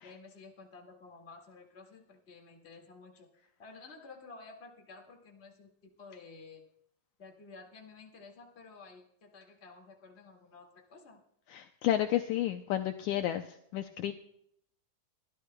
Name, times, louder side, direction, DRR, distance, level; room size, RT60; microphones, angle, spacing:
voice 1, 0.0-3.3 3.6-6.6 7.2-11.2, left 4 dB, 25° left, 1 dB, 1.7 m, -52 dB
voice 2, 11.5-14.1, left 12 dB, 80° left, 7 dB, 1.8 m, -31 dB
25.0 x 13.0 x 2.3 m, 0.71 s
omnidirectional pair, 3.9 m